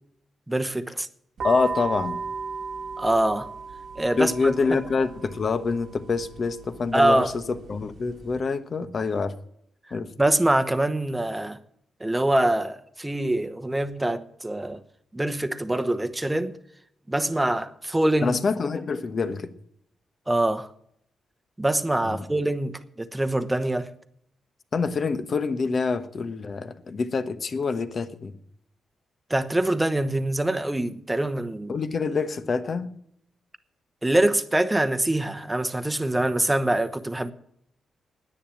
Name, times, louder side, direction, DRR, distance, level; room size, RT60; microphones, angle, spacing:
voice 1, 0.5-1.1 3.0-3.5 4.0-4.8 6.9-7.3 10.2-11.6 12.0-14.8 15.1-16.5 17.1-18.4 20.3-20.7 21.6-23.9 29.3-31.8 34.0-37.3, right 1 dB, 10° right, 1.0 m, -24 dB
voice 2, 1.4-2.2 4.2-7.3 7.7-9.3 9.9-10.1 18.2-19.5 22.0-22.2 24.7-28.3 31.7-32.9, left 4 dB, 50° left, 1.1 m, -26 dB
sound 1, 1.4-8.4, right 4 dB, 65° right, 1.4 m, -36 dB
10.0 x 8.9 x 8.5 m
cardioid pair, 90°, 0 cm